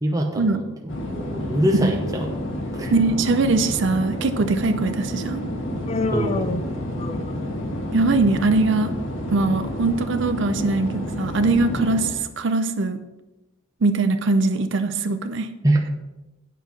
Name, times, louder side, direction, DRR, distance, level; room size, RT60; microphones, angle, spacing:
voice 1, 0.0-2.3 2.7-2.9 6.1-6.6 15.6-15.8, right 1 dB, 15° right, 1 dB, 0.8 m, -24 dB
sound 1, 0.9-12.1, left 1 dB, 65° left, 1.5 m, -29 dB
voice 2, 2.9-5.4 7.9-8.9 9.3-13.0 13.8-15.5, right 3 dB, 60° right, 9 dB, 0.5 m, -21 dB
Human voice, 5.9-7.6, left 3 dB, 30° left, 0.4 m, -28 dB
9.3 x 5.6 x 6.0 m, 1.0 s
head